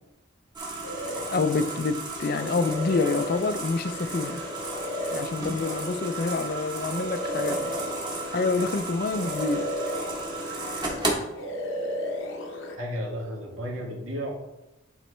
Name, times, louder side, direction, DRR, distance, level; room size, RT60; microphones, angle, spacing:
sound 1, 0.5-11.1, right 3 dB, 20° right, 1.1 m, -34 dB
sound 2, 0.8-1.8 2.2-8.8 9.1-11.1 11.3-12.8, left 1 dB, 65° left, 0.8 m, -34 dB
voice 1, 1.3-4.4 5.1-7.7 8.3-9.7, left 4 dB, 45° left, 0.4 m, -27 dB
voice 2, 12.8-14.3, equal, 80° right, 1.9 m, -33 dB
10.0 x 4.0 x 3.3 m
head